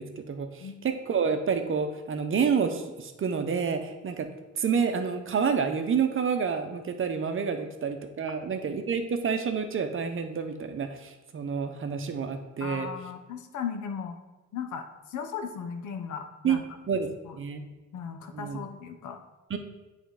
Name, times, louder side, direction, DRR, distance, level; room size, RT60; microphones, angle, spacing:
voice 1, 0.0-4.3 4.6-12.9 16.4-16.6 16.9-17.1 17.4-17.6 18.3-18.6 19.5-19.6, right 6 dB, 45° right, 7 dB, 0.8 m, -28 dB
voice 2, 12.6-14.2 14.5-16.6 17.2-17.4 17.9-19.2, left 7 dB, 75° left, 7 dB, 0.9 m, -37 dB
7.9 x 3.6 x 4.8 m, 1.1 s
cardioid pair, 90°, 30 cm